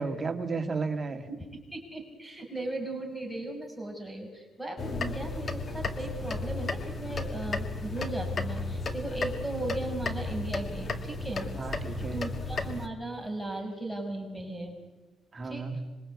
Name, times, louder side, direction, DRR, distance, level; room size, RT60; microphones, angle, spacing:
voice 1, 0.0-1.3 11.5-12.3 15.3-15.9, right 4 dB, 35° right, 6 dB, 2.2 m, -33 dB
voice 2, 1.3-11.5 12.1-14.8 15.4-15.7, right 2 dB, ahead, 3 dB, 6.0 m, -37 dB
sound 1, 4.8-12.9, left 3 dB, 40° left, 2.1 m, -34 dB
26.5 x 23.0 x 8.5 m, 1.1 s
cardioid pair, 90°, 0 cm